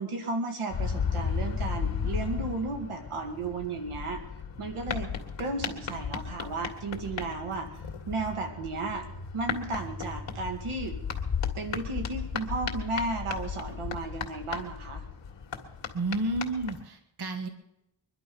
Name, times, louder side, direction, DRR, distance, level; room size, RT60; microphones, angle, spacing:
voice 1, 0.0-4.2 4.6-5.1 5.4-7.7 8.1-9.0 9.3-11.0 11.6-15.0, right 3 dB, 90° right, 5 dB, 2.2 m, -34 dB
sound 1, 0.7-16.8, left 6 dB, 60° left, 2.0 m, -35 dB
voice 2, 15.9-17.5, right 2 dB, 50° right, 6 dB, 1.7 m, -31 dB
22.5 x 11.0 x 5.4 m, 0.84 s
wide cardioid pair, 120°, 49 cm